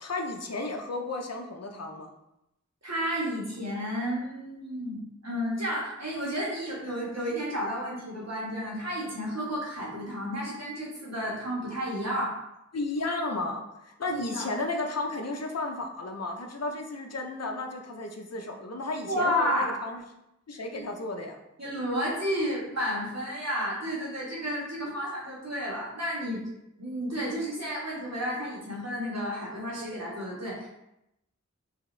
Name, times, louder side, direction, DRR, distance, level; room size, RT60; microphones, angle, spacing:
voice 1, 0.0-2.1 12.7-20.0 20.5-21.4, left 2 dB, 60° left, 3 dB, 0.6 m, -33 dB
voice 2, 2.8-12.3 14.1-14.5 19.1-19.8 20.7-20.8 21.6-26.4 26.8-30.7, equal, 60° right, -5 dB, 1.4 m, -31 dB
4.9 x 2.8 x 3.2 m, 0.86 s
wide cardioid pair, 50°, 30 cm